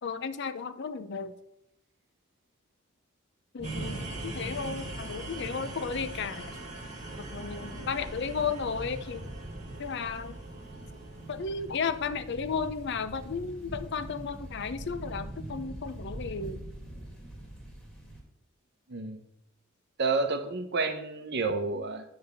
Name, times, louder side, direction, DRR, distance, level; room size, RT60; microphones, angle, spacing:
voice 1, 0.0-1.3 3.5-6.6 7.2-9.3 9.8-10.4 11.3-16.6, left 5 dB, 55° left, 12 dB, 0.6 m, -34 dB
sound 1, 3.6-18.2, right 1 dB, 5° left, 2.2 m, -42 dB
sound 2, 3.6-13.4, right 2 dB, 35° right, 1.7 m, -44 dB
voice 2, 18.9-19.2 20.0-22.0, right 3 dB, 55° right, 7 dB, 0.9 m, -30 dB
9.4 x 3.5 x 6.7 m, 0.80 s
head